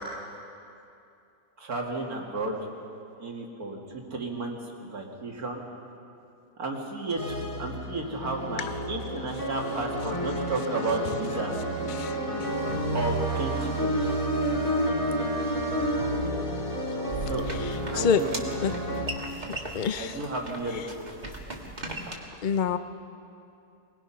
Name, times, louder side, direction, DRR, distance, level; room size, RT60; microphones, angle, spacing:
voice 1, 1.6-2.6 3.2-5.6 6.6-11.5 12.9-14.1 17.1-17.4 17.9-18.3 20.0-21.2, right 2 dB, 60° right, 1 dB, 2.6 m, -33 dB
sound 1, 7.2-19.1, right 1 dB, 50° left, 3.7 m, -30 dB
voice 2, 11.9-12.5 17.9-18.2 18.6-18.7 19.7-20.1 22.4-22.8, left 7 dB, 75° left, 10 dB, 0.4 m, -26 dB
sound 2, 17.1-22.1, right 2 dB, 25° right, 1.9 m, -38 dB
24.0 x 20.0 x 5.8 m, 2.7 s
omnidirectional pair, 1.8 m